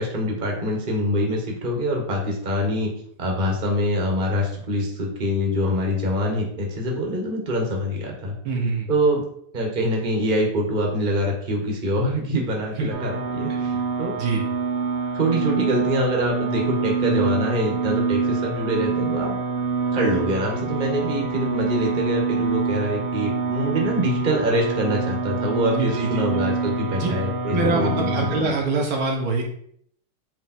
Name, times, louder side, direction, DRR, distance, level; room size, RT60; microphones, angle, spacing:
voice 1, 0.0-2.9 3.2-8.3 8.9-9.2 9.5-13.7 14.0-14.2 15.1-19.4 19.9-28.3, equal, 25° right, 0 dB, 1.5 m, -24 dB
voice 2, 8.5-8.9 12.8-12.9 14.2-14.4 25.8-26.2 27.0-27.1 27.5-29.4, right 3 dB, 70° right, -1 dB, 1.9 m, -24 dB
sound 1, 12.9-28.4, right 4 dB, 45° right, 1.6 m, -26 dB
8.4 x 3.6 x 4.4 m, 0.65 s
omnidirectional pair, 2.4 m